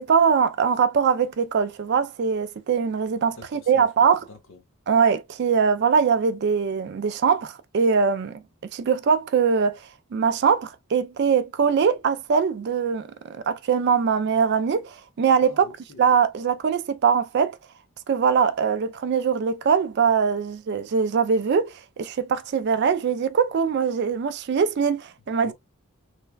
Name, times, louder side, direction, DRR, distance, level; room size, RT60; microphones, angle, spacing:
voice 1, 0.0-4.2 4.9-8.4 8.7-9.8 10.1-15.7 16.0-17.6 18.1-25.5, right 6 dB, 50° right, 0.3 m, -22 dB
voice 2, 3.3-3.9 4.3-4.6 15.4-16.0 25.4-25.5, left 2 dB, 65° left, 0.9 m, -45 dB
3.2 x 2.2 x 2.2 m
head